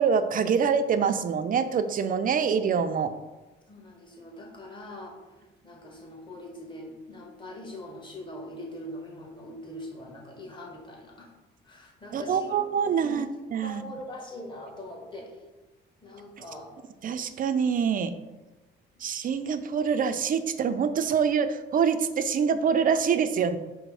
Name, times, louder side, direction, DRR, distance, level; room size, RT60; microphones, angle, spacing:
voice 1, 0.0-3.1 12.1-13.3 13.5-13.8 17.0-18.2 19.0-23.6, right 6 dB, 45° right, 10 dB, 0.4 m, -25 dB
voice 2, 3.7-5.1 5.6-11.3 11.6-12.6 12.9-13.2 13.6-15.3 16.0-16.7, left 1 dB, 25° left, -1 dB, 1.2 m, -42 dB
5.0 x 2.1 x 4.7 m, 1.1 s
cardioid pair, 90°, 20 cm